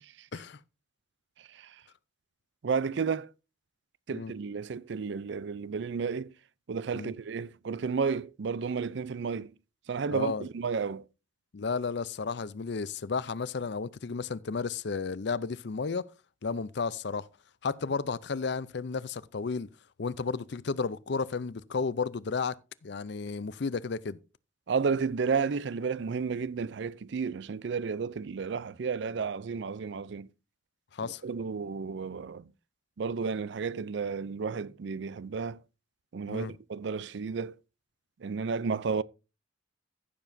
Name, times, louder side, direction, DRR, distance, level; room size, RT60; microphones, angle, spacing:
voice 1, 2.6-3.3 4.1-6.3 6.7-9.5 9.9-11.0 24.7-30.3 31.0-32.4 33.0-35.6 36.1-37.5 38.2-39.0, right 5 dB, 60° right, 0.4 m, -32 dB
voice 2, 10.1-10.5 11.5-16.1 16.4-17.3 17.6-19.7 20.0-22.6 22.8-24.2 30.9-31.2 36.3-36.5, left 5 dB, 60° left, 0.5 m, -33 dB
15.5 x 7.0 x 2.6 m
head